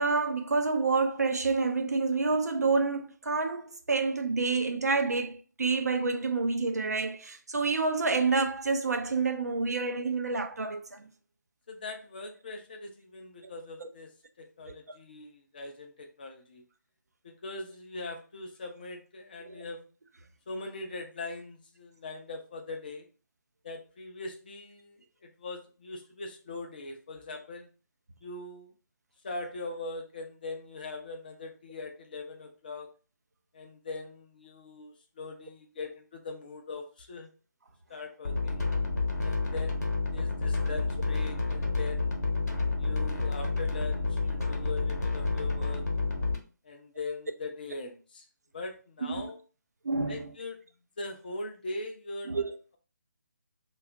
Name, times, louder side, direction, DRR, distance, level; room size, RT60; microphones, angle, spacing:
voice 1, 0.0-11.0 13.4-13.5 13.8-13.9 19.5-19.6 49.0-49.3 49.8-50.3 52.3-52.6, right 4 dB, 60° right, 0.5 m, -28 dB
voice 2, 11.7-14.1 14.4-16.6 17.2-19.9 20.5-23.1 23.6-27.7 28.2-28.7 29.2-32.9 33.5-37.3 37.9-38.6 39.2-42.1 42.8-45.9 46.6-48.2 48.5-49.4 50.1-50.6 51.0-52.4, left 3 dB, 30° left, 0.4 m, -41 dB
sound 1, 38.2-46.4, left 3 dB, 60° left, 0.9 m, -29 dB
2.7 x 2.3 x 3.5 m
figure-of-eight pair, 150°, 10 cm